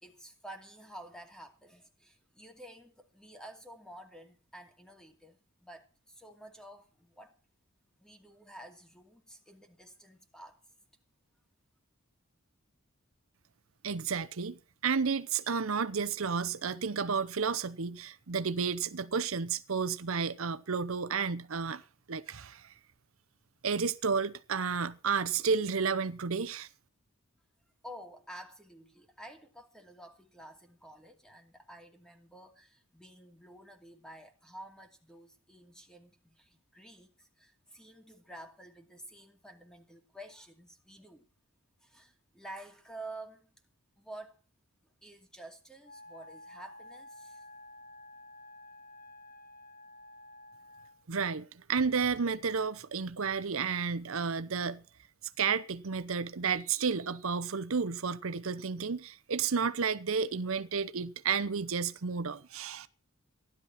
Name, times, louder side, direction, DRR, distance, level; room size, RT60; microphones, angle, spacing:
voice 1, 0.0-7.3 8.0-10.6 27.8-41.3 41.8-43.5 44.0-44.4 45.0-47.4, right 1 dB, 5° left, 2.4 m, -50 dB
voice 2, 13.8-21.8 22.1-22.7 23.6-26.7 51.1-54.8 55.4-62.9, right 5 dB, 70° right, 0.8 m, -32 dB
Wind instrument woodwind instrument, 45.8-51.1, left 1 dB, 40° left, 1.4 m, -51 dB
16.0 x 11.5 x 5.8 m
head